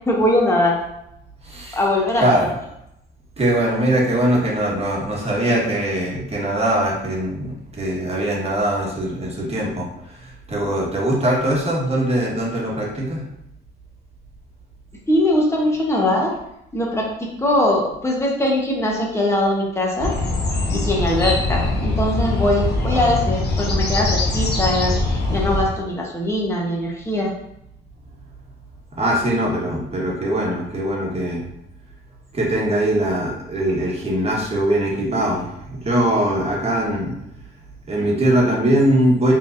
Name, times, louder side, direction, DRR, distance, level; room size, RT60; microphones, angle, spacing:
voice 1, 0.1-0.8 1.7-2.5 15.1-16.3 16.7-20.1 20.7-24.9 25.3-27.3, left 1 dB, 15° left, -2 dB, 1.2 m, -21 dB
voice 2, 1.4-1.8 2.2-2.5 3.4-13.2 22.9-23.2 29.0-31.4 32.3-37.1 37.9-39.3, right 1 dB, 30° right, -3 dB, 1.4 m, -21 dB
sound 1, 20.0-25.6, left 2 dB, 55° left, 1.0 m, -22 dB
4.6 x 3.5 x 2.6 m, 0.80 s
cardioid pair, 90°, 20 cm